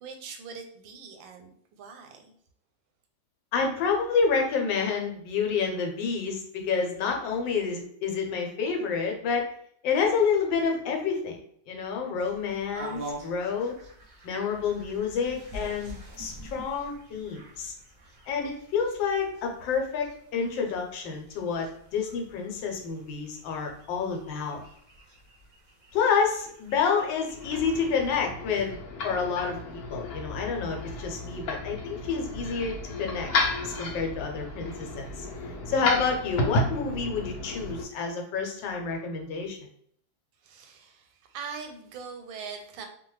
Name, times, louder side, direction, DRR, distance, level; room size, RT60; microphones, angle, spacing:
voice 1, 0.0-2.3 40.4-42.9, right 5 dB, 85° right, 5 dB, 1.3 m, -42 dB
voice 2, 3.5-9.6 9.8-11.4 11.7-13.7 14.2-17.7 18.3-21.7 21.9-24.6 25.9-28.8 29.0-33.3 33.6-35.3 35.7-39.6, left 5 dB, 85° left, 2 dB, 1.4 m, -29 dB
sound 1, 12.2-28.1, right 1 dB, 60° right, 0.5 m, -47 dB
sound 2, 27.3-37.8, left 2 dB, 65° left, 1.0 m, -33 dB
2.9 x 2.2 x 3.0 m, 0.65 s
omnidirectional pair, 2.0 m